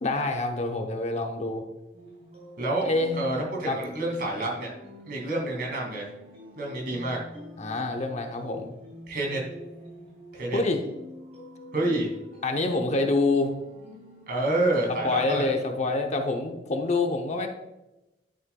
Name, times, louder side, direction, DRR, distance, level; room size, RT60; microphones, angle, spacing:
voice 1, 0.0-1.7 2.8-3.3 3.6-3.8 7.6-8.7 10.5-10.8 12.4-13.5 15.0-17.5, left 2 dB, 40° left, 4 dB, 0.7 m, -26 dB
sound 1, 1.9-15.5, left 1 dB, 40° right, 2.6 m, -46 dB
voice 2, 3.1-4.7 5.1-6.1 6.6-7.2 9.1-9.4 10.3-10.6 11.7-12.1 14.3-15.4, right 2 dB, 55° right, -1 dB, 2.2 m, -28 dB
11.0 x 6.5 x 2.3 m, 0.99 s
head